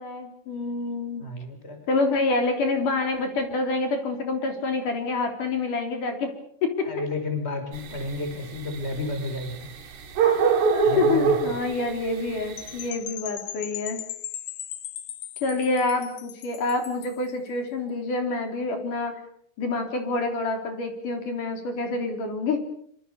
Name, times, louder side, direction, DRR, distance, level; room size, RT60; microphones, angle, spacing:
voice 1, 0.0-1.3 1.9-6.3 6.6-6.7 10.7-14.0 15.4-19.2 19.6-22.6, left 3 dB, 50° left, 5 dB, 4.8 m, -27 dB
voice 2, 1.2-1.8 6.8-9.7 10.8-11.6, left 2 dB, 15° left, 6 dB, 5.6 m, -31 dB
sound 1, 7.7-12.9, right 6 dB, 80° right, 4.9 m, -24 dB
Percussion / Wind chime, 12.6-17.3, left 12 dB, 70° left, 3.0 m, -38 dB
26.0 x 25.5 x 7.0 m, 0.67 s
omnidirectional pair, 4.8 m